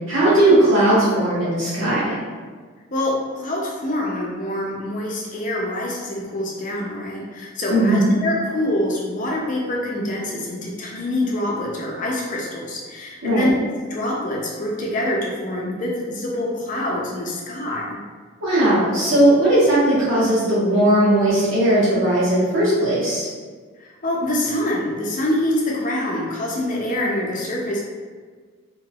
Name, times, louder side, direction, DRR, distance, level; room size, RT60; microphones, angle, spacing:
voice 1, 0.1-2.1 7.7-8.1 13.2-13.5 18.4-23.3, right 1 dB, 80° right, -9 dB, 1.4 m, -17 dB
voice 2, 2.9-13.5 13.9-18.0 24.0-27.8, left 1 dB, 40° left, -2 dB, 0.5 m, -25 dB
3.3 x 2.9 x 2.3 m, 1.5 s
head